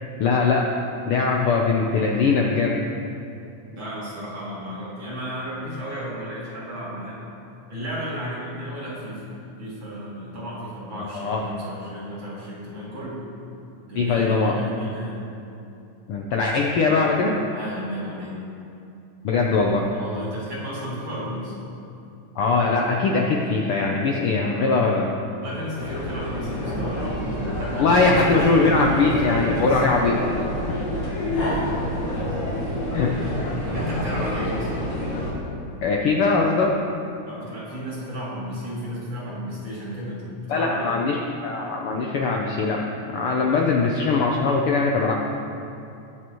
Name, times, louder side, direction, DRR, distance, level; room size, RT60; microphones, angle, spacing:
voice 1, 0.2-0.7 1.1-2.8 11.0-11.4 14.0-14.5 16.1-17.4 19.2-19.9 22.4-25.1 27.7-30.2 30.7-30.9 32.9-33.1 35.8-36.8 40.5-41.2 41.4-45.1, left 4 dB, 90° left, 0 dB, 1.2 m, -21 dB
voice 2, 3.7-7.2 7.7-9.2 9.6-13.3 13.9-15.2 17.5-18.4 19.9-21.5 25.3-29.8 31.4-31.6 33.2-33.4 33.7-34.8 37.3-40.9, equal, 40° right, -8 dB, 3.1 m, -33 dB
sound 1, 25.8-35.3, left 1 dB, 45° left, 3.6 m, -28 dB
20.0 x 7.8 x 3.1 m, 2.6 s
omnidirectional pair, 3.5 m